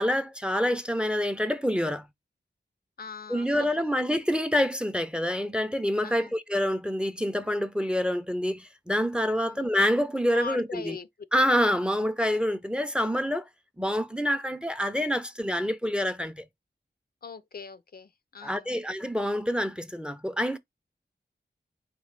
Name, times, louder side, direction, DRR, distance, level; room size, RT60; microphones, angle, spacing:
voice 1, 0.0-2.1 3.3-11.0 11.3-13.5 13.8-16.4 18.4-20.6, equal, 5° right, 0.4 m, -27 dB
voice 2, 3.0-3.7 6.0-6.3 9.4-9.6 10.3-11.1 17.2-18.8, left 5 dB, 55° left, 0.4 m, -41 dB
4.0 x 2.1 x 3.2 m
wide cardioid pair, 80°, 19 cm